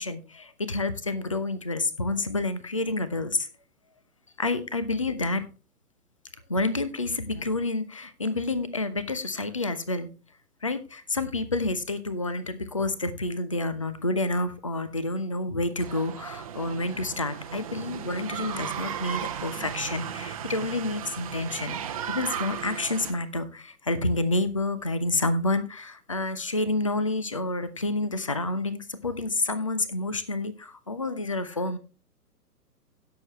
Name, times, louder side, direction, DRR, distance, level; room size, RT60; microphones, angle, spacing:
voice 1, 0.0-3.5 4.4-5.4 6.5-10.1 10.6-21.8 22.1-31.8, left 2 dB, 20° left, 14 dB, 0.5 m, -29 dB
sound 1, 15.8-23.1, right 8 dB, 25° right, 0.8 m, -36 dB
16.5 x 6.7 x 3.1 m, 0.34 s
figure-of-eight pair, 130°, 47 cm